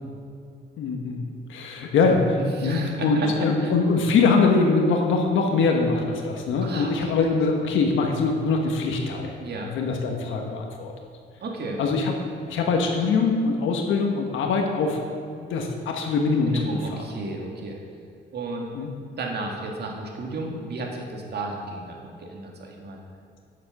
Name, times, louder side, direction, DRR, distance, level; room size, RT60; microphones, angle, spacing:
voice 1, 0.8-1.2 1.5-9.4 9.6-10.9 11.8-12.1 12.5-15.0 15.3-16.6 16.9-17.0 18.7-18.9, left 4 dB, 80° left, 2 dB, 1.3 m, -23 dB
voice 2, 2.4-3.7 6.6-7.1 9.4-9.7 11.4-11.8 16.4-17.8 18.3-18.7 19.2-23.0, right 2 dB, 55° right, 0 dB, 2.0 m, -33 dB
9.3 x 7.6 x 6.0 m, 2.4 s
cardioid pair, 90°, 20 cm